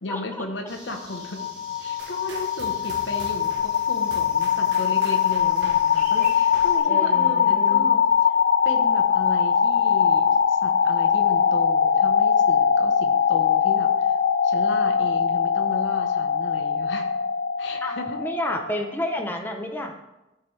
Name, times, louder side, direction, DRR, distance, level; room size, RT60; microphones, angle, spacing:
voice 1, 0.0-1.5 1.8-8.0 8.6-14.1 14.4-17.1 17.6-18.2, left 2 dB, 85° left, 4 dB, 1.0 m, -35 dB
sound 1, 0.7-6.8, right 1 dB, 5° right, 1.8 m, -46 dB
sound 2, 1.0-18.8, left 7 dB, 55° left, 0.3 m, -21 dB
sound 3, 2.0-7.8, right 3 dB, 70° right, 1.2 m, -44 dB
voice 2, 6.9-7.9 17.8-20.0, left 1 dB, 10° left, 3 dB, 0.7 m, -30 dB
13.5 x 4.7 x 3.2 m, 0.97 s
head